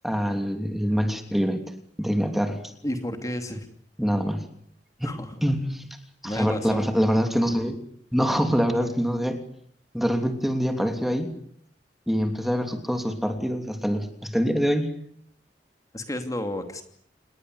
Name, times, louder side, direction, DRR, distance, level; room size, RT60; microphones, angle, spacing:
voice 1, 0.0-1.6 2.0-2.7 4.0-4.5 5.0-5.1 5.4-5.8 6.2-7.8 8.1-9.4 9.9-11.4 12.1-14.9, equal, ahead, 6 dB, 3.0 m, -25 dB
voice 2, 2.8-3.7 5.0-5.4 6.2-6.9 15.9-16.8, left 1 dB, 20° left, 6 dB, 2.7 m, -31 dB
29.0 x 21.0 x 8.1 m, 0.65 s
head